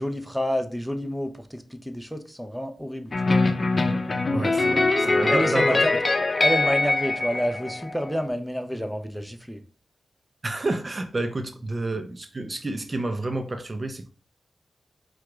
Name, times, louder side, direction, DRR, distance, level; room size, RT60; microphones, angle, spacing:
voice 1, 0.0-3.4 5.3-5.9 6.4-9.6, equal, ahead, 0.6 m, -29 dB
sound 1, 3.1-8.2, left 3 dB, 50° left, 0.6 m, -23 dB
voice 2, 4.3-5.8 10.4-14.1, right 2 dB, 40° right, 0.6 m, -29 dB
4.6 x 2.4 x 3.6 m
cardioid pair, 55°, 0 cm